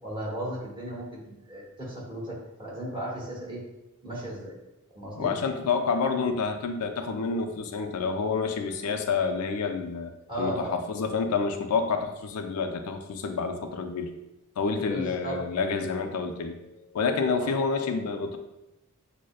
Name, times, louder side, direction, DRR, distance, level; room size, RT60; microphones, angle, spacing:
voice 1, 0.0-3.6 4.0-4.6 4.9-5.3 10.3-10.8 14.8-15.4 17.4-17.5, right 1 dB, 20° right, -5 dB, 1.1 m, -35 dB
voice 2, 5.2-10.1 10.4-14.1 14.6-18.4, left 5 dB, 90° left, 6 dB, 0.4 m, -28 dB
6.2 x 2.1 x 2.3 m, 0.93 s
head